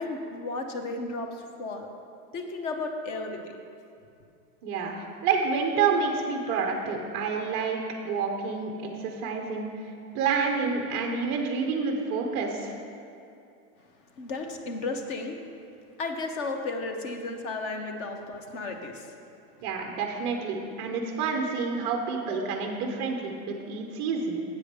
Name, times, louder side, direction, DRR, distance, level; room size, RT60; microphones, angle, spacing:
voice 1, 0.0-1.9 2.3-3.4 14.2-15.4 16.0-19.1, left 3 dB, 30° left, 5 dB, 0.7 m, -33 dB
voice 2, 4.6-7.8 8.0-12.8 19.6-24.4, right 5 dB, 25° right, 2 dB, 0.4 m, -29 dB
8.0 x 5.0 x 6.4 m, 2.6 s
supercardioid pair, 155°, 44 cm